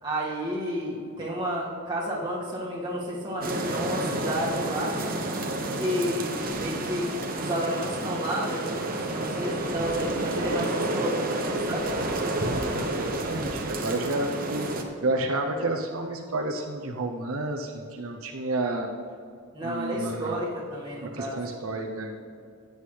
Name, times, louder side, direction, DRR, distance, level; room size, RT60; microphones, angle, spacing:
voice 1, 0.0-5.0 5.8-7.1 7.4-12.2 19.5-21.4, equal, 20° right, -5 dB, 1.9 m, -31 dB
sound 1, 3.4-14.8, right 1 dB, 40° right, 0.9 m, -30 dB
voice 2, 12.7-14.7 15.0-18.9 19.6-20.4 21.0-22.1, right 2 dB, 70° right, 2 dB, 0.7 m, -30 dB
14.0 x 8.0 x 3.3 m, 2.4 s
head